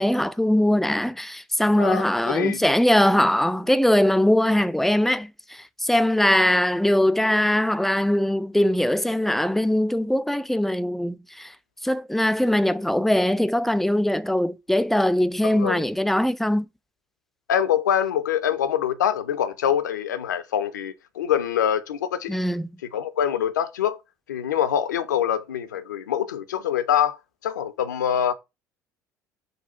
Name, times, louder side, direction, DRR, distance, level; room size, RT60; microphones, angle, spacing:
voice 1, 0.0-11.5 11.8-16.7 22.3-22.7, left 1 dB, ahead, 0.3 m, -21 dB
voice 2, 1.8-2.6 15.4-15.8 17.5-22.4 22.9-24.0 24.3-28.3, left 9 dB, 80° left, 0.4 m, -25 dB
3.8 x 2.3 x 4.2 m
figure-of-eight pair, 60°, 10 cm